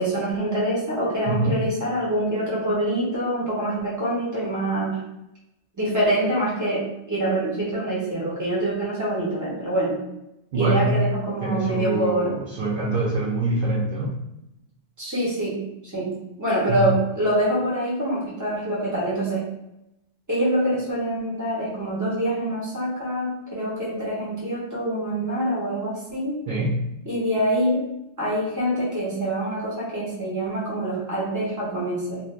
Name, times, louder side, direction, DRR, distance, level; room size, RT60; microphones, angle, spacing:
voice 1, 0.0-5.0 5.8-10.0 10.5-12.3 15.0-15.6 15.8-19.4 20.3-26.4 27.0-27.8 28.2-32.2, right 1 dB, 15° right, -7 dB, 1.0 m, -25 dB
voice 2, 1.3-1.6 10.5-11.0 11.4-14.2 16.7-16.9 26.5-26.8, right 2 dB, 55° right, -4 dB, 0.7 m, -24 dB
2.6 x 2.5 x 3.1 m, 0.86 s
omnidirectional pair, 1.3 m